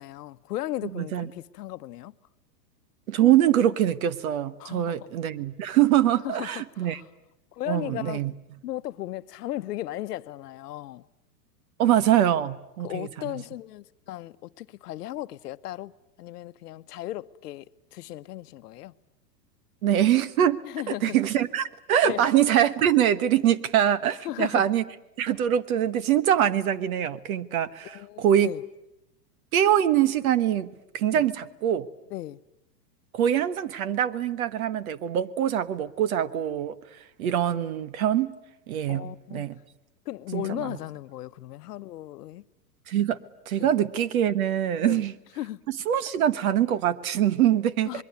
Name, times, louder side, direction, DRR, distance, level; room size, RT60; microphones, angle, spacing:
voice 1, 0.0-2.1 4.6-5.1 6.2-7.0 7.5-8.3 8.6-11.0 12.8-15.9 16.2-17.7 17.9-18.9 20.6-21.2 22.0-22.2 24.2-24.6 27.9-28.6 31.1-31.2 32.1-32.4 38.9-39.5 40.1-42.5 43.6-43.7 44.8-45.1 45.4-45.6 47.9-48.0, left 14 dB, 70° left, 0.9 m, -36 dB
voice 2, 0.9-1.3 3.1-7.0 7.7-8.3 11.8-13.1 19.8-20.6 20.9-24.8 25.2-28.5 29.5-30.7 30.9-31.9 33.1-36.7 37.2-38.3 38.7-39.6 40.3-40.8 42.9-43.2 43.5-45.1 45.7-48.0, right 10 dB, 60° right, 1.4 m, -24 dB
26.5 x 22.0 x 9.5 m
supercardioid pair, 160°, 49 cm